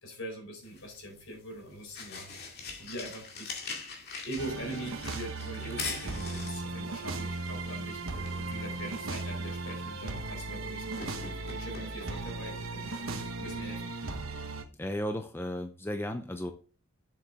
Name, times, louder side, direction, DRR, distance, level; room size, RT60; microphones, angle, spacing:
voice 1, 0.0-2.3 2.8-3.6 4.2-13.8, right 1 dB, 75° left, 2 dB, 4.3 m, -43 dB
sound 1, 0.6-14.2, left 4 dB, 50° left, 2.1 m, -44 dB
sound 2, 4.4-14.6, right 3 dB, 75° right, 1.1 m, -37 dB
voice 2, 14.8-16.5, equal, 10° left, 6 dB, 0.6 m, -34 dB
7.7 x 6.8 x 3.6 m, 0.37 s
head